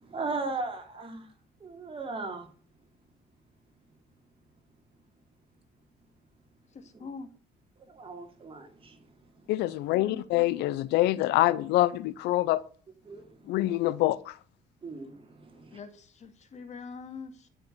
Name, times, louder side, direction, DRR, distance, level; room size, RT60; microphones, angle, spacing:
voice 1, 0.0-1.3 1.6-2.5 6.9-7.1 7.9-9.0 13.1-13.3 14.8-15.8, right 3 dB, 30° right, 3.2 m, -37 dB
voice 2, 6.7-7.3 9.9-10.3 13.4-13.6 15.7-17.5, left 5 dB, 45° left, 2.2 m, -44 dB
voice 3, 9.5-12.6 13.5-14.4, left 16 dB, 85° left, 0.6 m, -25 dB
12.0 x 6.4 x 6.8 m
cardioid pair, 110°, 17 cm